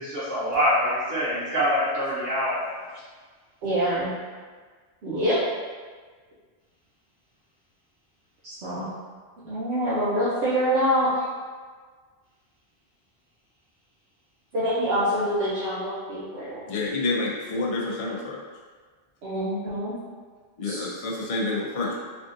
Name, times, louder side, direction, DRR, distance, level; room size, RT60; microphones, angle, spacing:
voice 1, 0.0-2.7, equal, 55° right, -11 dB, 1.0 m, -25 dB
voice 2, 3.6-4.1 5.0-5.4 8.4-8.9 9.4-11.1 14.5-16.6 19.2-20.0 20.6-20.8, equal, 80° right, -11 dB, 1.0 m, -25 dB
voice 3, 16.7-18.4 20.6-22.0, left 2 dB, 45° left, -3 dB, 0.5 m, -28 dB
3.4 x 2.4 x 2.6 m, 1.5 s
omnidirectional pair, 1.1 m